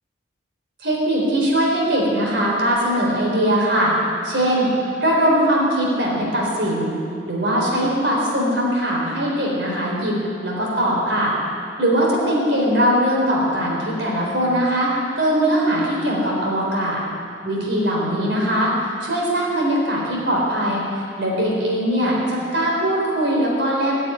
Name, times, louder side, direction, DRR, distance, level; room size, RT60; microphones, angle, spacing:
voice 1, 0.8-3.9 4.2-6.9 7.3-10.2 10.4-11.3 11.8-14.9 15.2-17.0 17.4-18.7 19.0-24.1, equal, 70° right, -3 dB, 4.0 m, -20 dB
15.5 x 6.8 x 9.7 m, 2.5 s
head